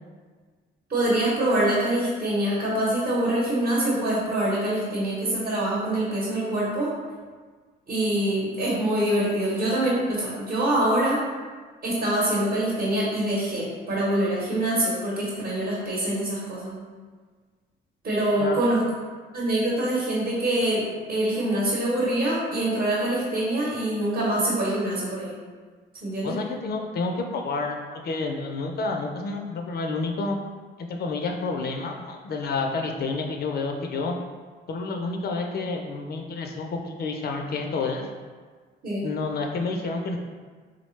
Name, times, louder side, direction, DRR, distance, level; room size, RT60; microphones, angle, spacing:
voice 1, 0.9-6.9 7.9-11.2 11.8-16.8 18.0-18.8 19.3-25.3 26.0-26.3 38.8-39.1, right 1 dB, 45° right, -6 dB, 0.9 m, -25 dB
voice 2, 26.2-30.4 30.8-34.2 34.7-38.1 39.0-40.2, left 3 dB, 55° left, 3 dB, 0.4 m, -29 dB
3.8 x 2.1 x 3.1 m, 1.5 s
cardioid pair, 90°, 20 cm